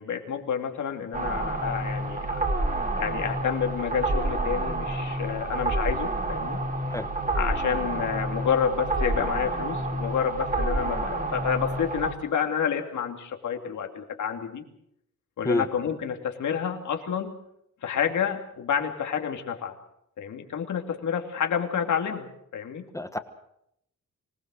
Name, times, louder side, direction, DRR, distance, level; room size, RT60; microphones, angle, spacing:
voice 1, 0.0-2.4 3.0-6.6 7.3-14.6 15.4-17.4 17.8-19.7 20.2-22.9, left 7 dB, 80° left, 4 dB, 2.8 m, -29 dB
sound 1, 1.1-12.1, right 2 dB, 30° right, 2.5 m, -29 dB
voice 2, 6.9-7.1 15.4-15.7 22.9-23.2, left 1 dB, 10° left, 8 dB, 1.2 m, -27 dB
25.5 x 19.0 x 6.4 m, 0.75 s
wide cardioid pair, 160°, 29 cm